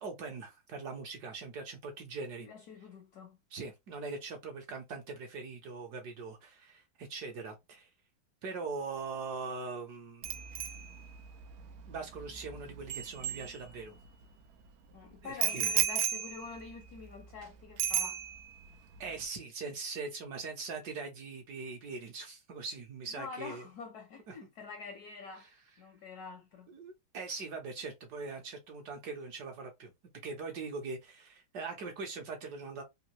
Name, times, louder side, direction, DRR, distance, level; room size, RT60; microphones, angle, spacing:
voice 1, 0.0-2.5 3.5-7.9 8.4-10.4 11.9-14.0 15.2-15.7 19.0-23.7 24.3-24.4 26.7-29.9 30.2-32.8, right 4 dB, 65° right, 1.1 m, -41 dB
voice 2, 2.4-3.4 14.9-18.2 23.1-25.5 25.8-26.7, left 5 dB, 70° left, 0.9 m, -46 dB
Bicycle bell, 10.2-14.1 15.4-17.4 17.8-18.7 18.9-19.2, right 10 dB, 85° right, 0.8 m, -35 dB
3.6 x 2.4 x 2.9 m
omnidirectional pair, 2.2 m